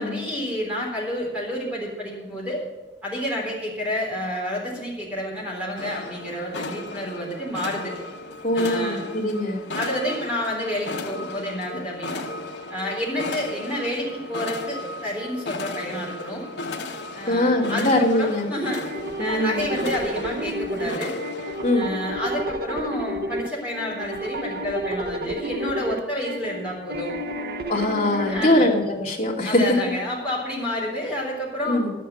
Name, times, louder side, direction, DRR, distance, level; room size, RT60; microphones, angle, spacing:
voice 1, 0.0-2.6 3.0-7.9 8.5-9.0 9.7-12.3 12.7-16.4 17.1-18.9 19.2-21.1 21.7-27.1 28.3-28.7 29.4-31.8, left 1 dB, 5° right, -5 dB, 3.6 m, -29 dB
sound 1, 5.8-21.8, left 2 dB, 70° left, 1.0 m, -35 dB
voice 2, 8.4-9.6 17.3-18.5 19.2-19.6 21.6-21.9 27.7-29.6 31.7-31.9, left 1 dB, 30° left, -6 dB, 2.6 m, -22 dB
sound 2, 18.6-28.5, equal, 55° right, 0.8 m, -31 dB
11.0 x 8.4 x 6.8 m, 1.2 s
head